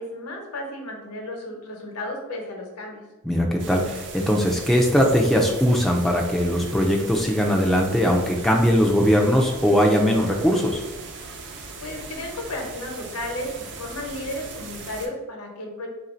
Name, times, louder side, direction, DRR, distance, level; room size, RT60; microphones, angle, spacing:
voice 1, 0.0-3.0 11.8-15.9, left 1 dB, 85° left, 1 dB, 0.9 m, -33 dB
voice 2, 3.3-10.8, equal, ahead, -1 dB, 0.3 m, -20 dB
sound 1, 3.6-15.1, right 3 dB, 55° right, 0.5 m, -39 dB
3.1 x 2.6 x 4.2 m, 1.1 s
head